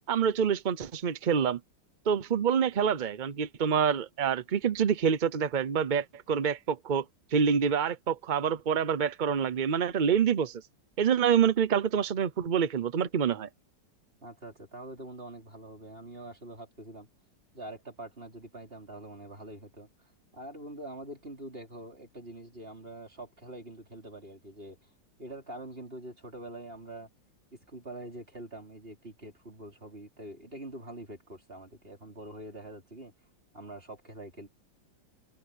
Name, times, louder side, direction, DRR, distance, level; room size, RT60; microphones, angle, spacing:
voice 1, 0.1-1.6 2.1-7.0 7.3-10.6 11.0-13.5, right 7 dB, 70° right, 0.4 m, -27 dB
voice 2, 14.2-17.1 17.5-24.9 25.2-27.1 27.5-33.1 33.5-34.5, right 1 dB, 30° right, 5.0 m, -45 dB
omnidirectional pair, 2.0 m